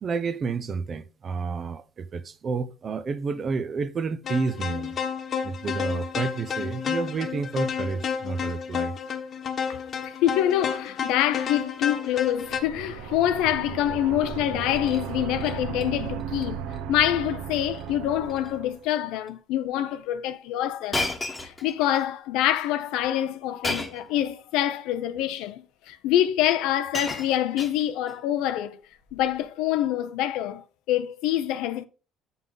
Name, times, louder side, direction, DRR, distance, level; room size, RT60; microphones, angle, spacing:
voice 1, 0.0-5.0 5.4-9.0, right 4 dB, 35° right, 0.6 m, -30 dB
sound 1, 4.2-12.6, left 7 dB, 40° left, 1.2 m, -31 dB
voice 2, 9.7-21.1 21.4-28.9 29.1-31.9, left 12 dB, 85° left, 0.7 m, -26 dB
sound 2, 12.3-18.8, right 8 dB, 75° right, 0.8 m, -35 dB
Shatter, 14.6-15.0 15.4-15.9 16.2-16.4 16.7-16.8 17.7-17.9 18.2-18.5 19.3-19.4 20.9-22.0 23.6-24.1 25.1-25.2 26.3-26.4 26.6-28.2 29.1-29.4, left 2 dB, 15° left, 1.2 m, -33 dB
7.7 x 5.4 x 3.9 m
cardioid pair, 145°, 0 cm